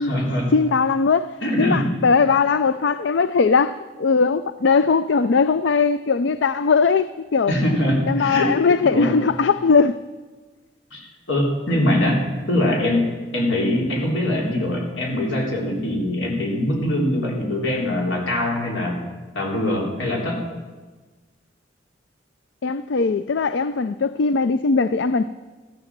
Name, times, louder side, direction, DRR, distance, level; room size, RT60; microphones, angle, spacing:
voice 1, 0.0-0.5 1.4-1.9 7.5-8.6 8.9-9.2 10.9-19.0 19.3-20.4, left 1 dB, 85° left, 3.9 m, -22 dB
voice 2, 0.5-7.5 8.1-10.0 22.6-25.3, left 4 dB, 70° left, 0.4 m, -19 dB
14.5 x 12.5 x 7.4 m
head